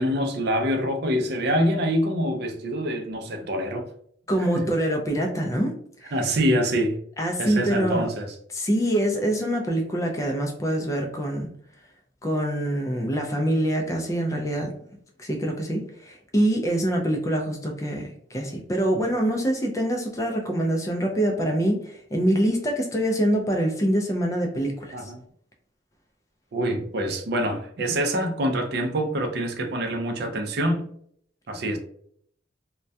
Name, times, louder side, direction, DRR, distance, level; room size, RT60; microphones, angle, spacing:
voice 1, 0.0-3.9 4.5-4.7 6.1-7.0 7.4-8.3 24.9-25.2 26.5-30.9 31.5-31.8, equal, 55° right, 0.4 m, -25 dB
voice 2, 4.3-6.1 7.2-8.1 8.5-11.5 12.2-14.7 15.2-25.1, right 1 dB, 15° left, 0.3 m, -25 dB
2.2 x 2.1 x 2.6 m
head